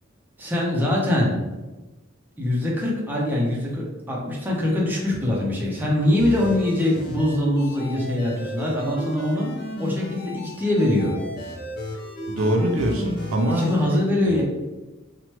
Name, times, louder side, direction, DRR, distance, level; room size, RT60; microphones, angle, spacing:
voice 1, 0.4-1.5 2.4-9.5 9.8-11.2 13.5-14.4, left 1 dB, 10° right, -4 dB, 0.5 m, -23 dB
sound 1, 6.2-13.8, left 1 dB, 50° left, 0.6 m, -34 dB
voice 2, 12.3-14.0 14.3-14.4, right 1 dB, 75° right, 2 dB, 0.5 m, -24 dB
2.9 x 2.1 x 2.9 m, 1.1 s
head